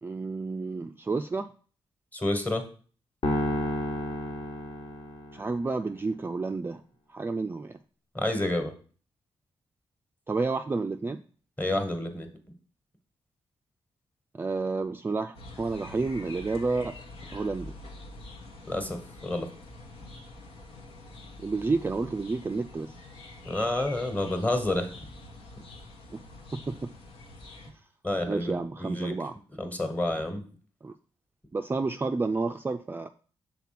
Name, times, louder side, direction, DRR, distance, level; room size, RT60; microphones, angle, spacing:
voice 1, 0.0-1.5 5.3-6.8 7.1-7.8 10.3-11.2 14.3-17.0 17.3-17.8 21.4-22.9 26.1-26.2 26.5-26.9 28.3-29.4 30.8-30.9 31.5-33.1, right 3 dB, 20° right, 6 dB, 0.4 m, -30 dB
voice 2, 2.1-2.6 8.1-8.7 11.6-12.3 18.7-19.0 19.2-19.5 23.4-24.9 28.0-29.1 29.6-30.4, left 1 dB, 15° left, 6 dB, 1.4 m, -29 dB
sound 1, 3.2-5.6, left 1 dB, 55° left, 1.5 m, -31 dB
sound 2, 15.3-27.7, left 2 dB, 85° left, 1.6 m, -46 dB
5.9 x 4.0 x 5.8 m, 0.40 s
cardioid pair, 85°, 10 cm